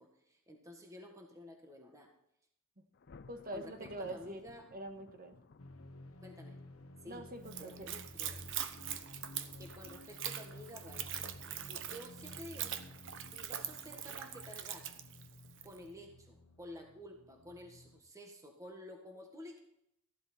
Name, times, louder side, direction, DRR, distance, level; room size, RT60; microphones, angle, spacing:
voice 1, 0.0-2.1 3.5-4.6 6.2-6.6 7.0-7.2 7.6-8.4 9.6-11.1 11.7-12.7 13.2-14.8 15.6-19.6, left 1 dB, 15° right, 2 dB, 1.6 m, -51 dB
Thunder, 2.9-6.3, left 4 dB, 50° left, 0.6 m, -58 dB
voice 2, 3.3-4.4 4.7-5.4 7.0-7.9, right 1 dB, 45° right, 6 dB, 1.5 m, -44 dB
sound 1, 5.6-18.0, left 1 dB, 80° left, 1.1 m, -53 dB
Splash splatter / Trickle dribble, 7.4-15.8, right 10 dB, 60° right, 0.9 m, -43 dB
14.5 x 11.5 x 4.3 m, 0.75 s
head